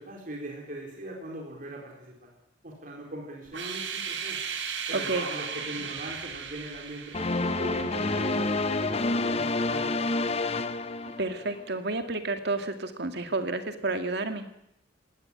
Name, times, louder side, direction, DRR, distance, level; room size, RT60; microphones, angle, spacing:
voice 1, 0.0-2.3 2.6-4.4 4.9-10.4, right 1 dB, 50° right, -1 dB, 4.3 m, -40 dB
sound 1, 3.5-10.3, right 6 dB, 90° right, 3.6 m, -37 dB
voice 2, 4.9-5.3 11.2-14.5, right 3 dB, 65° right, 7 dB, 2.3 m, -30 dB
sound 2, 7.1-11.6, left 2 dB, 35° left, 0.9 m, -28 dB
19.0 x 16.5 x 10.0 m, 0.80 s
head